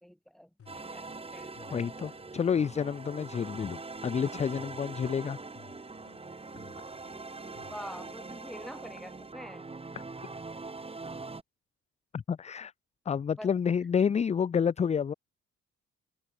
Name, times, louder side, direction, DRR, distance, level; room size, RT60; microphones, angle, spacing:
voice 1, 0.0-1.8 7.7-9.7 13.4-13.5, equal, ahead, 1.4 m, -46 dB
sound 1, 0.6-8.4, left 7 dB, 50° left, 4.8 m, -58 dB
sound 2, 0.7-11.4, right 3 dB, 20° right, 1.6 m, -43 dB
voice 2, 1.7-5.4 12.1-12.7 13.1-15.1, left 7 dB, 25° left, 0.4 m, -29 dB
cardioid pair, 90°, 30 cm